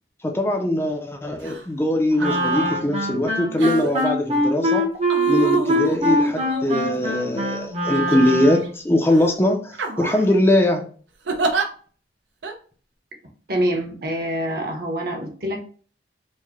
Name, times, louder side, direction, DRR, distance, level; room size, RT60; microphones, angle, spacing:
voice 1, 0.2-4.9 5.3-10.8, left 1 dB, 15° left, 3 dB, 0.4 m, -21 dB
sound 1, 1.4-1.6 2.1-2.8 3.6-4.1 5.1-7.2 7.9-8.7 9.1-9.3 9.7-10.3 11.3-11.7 12.4-12.5, right 3 dB, 90° right, 0.6 m, -29 dB
Wind instrument woodwind instrument, 2.2-8.8, equal, 35° right, 0.7 m, -23 dB
voice 2, 13.5-15.6, equal, 60° right, 2 dB, 1.0 m, -25 dB
4.6 x 2.1 x 2.9 m, 0.42 s
head